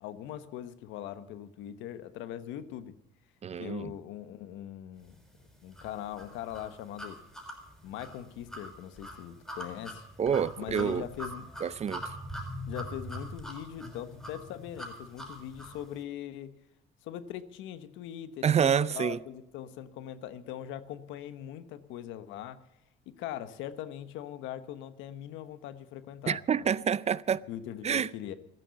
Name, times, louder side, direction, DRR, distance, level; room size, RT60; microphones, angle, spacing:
voice 1, 0.0-2.9 3.6-5.2 5.6-7.2 7.8-10.0 10.6-11.5 12.7-16.6 17.0-22.6 23.1-26.7 27.5-28.3, left 11 dB, 80° left, 1.2 m, -41 dB
voice 2, 3.4-3.9 10.2-11.1 11.6-12.1 18.4-19.2 26.3-27.4 27.8-28.1, right 8 dB, 35° right, 0.5 m, -28 dB
sound 1, 5.8-15.8, equal, 5° left, 6.2 m, -42 dB
14.5 x 12.5 x 7.0 m
cardioid pair, 95°, 19 cm